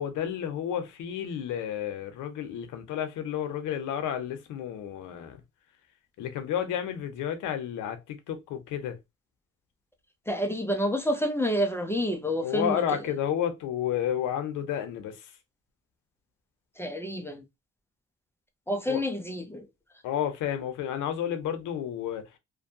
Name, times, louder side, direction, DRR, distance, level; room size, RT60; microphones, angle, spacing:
voice 1, 0.0-5.4 6.2-9.0 12.4-15.3 18.9-19.0 20.0-22.3, left 9 dB, 85° left, 0.7 m, -31 dB
voice 2, 10.3-12.8 16.8-17.4 18.7-19.7, equal, 10° left, 0.4 m, -28 dB
2.5 x 2.2 x 2.7 m
cardioid pair, 90°, 30 cm